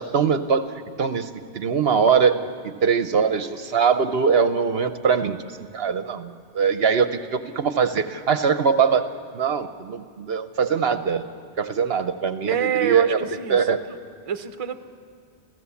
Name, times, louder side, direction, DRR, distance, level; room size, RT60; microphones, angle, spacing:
voice 1, 0.0-2.4 2.6-9.1 9.3-11.2 11.6-13.2 13.5-13.8, right 6 dB, 60° right, 10 dB, 0.9 m, -22 dB
voice 2, 12.5-14.0 14.3-14.8, right 8 dB, 35° right, 9 dB, 0.7 m, -27 dB
28.5 x 15.5 x 7.1 m, 2.2 s
omnidirectional pair, 1.2 m